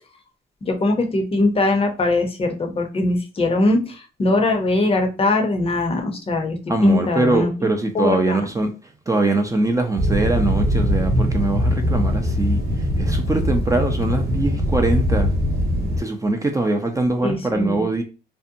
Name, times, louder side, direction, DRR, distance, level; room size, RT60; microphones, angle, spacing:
voice 1, 0.6-7.7 7.9-8.5 17.2-17.8, left 2 dB, 30° left, 0.6 m, -21 dB
voice 2, 6.7-8.7 9.1-12.6 13.0-15.3 16.0-18.0, right 2 dB, 15° right, 0.4 m, -22 dB
sound 1, 10.0-16.0, left 1 dB, 50° right, 0.7 m, -21 dB
2.6 x 2.1 x 2.5 m
cardioid pair, 90°, 20 cm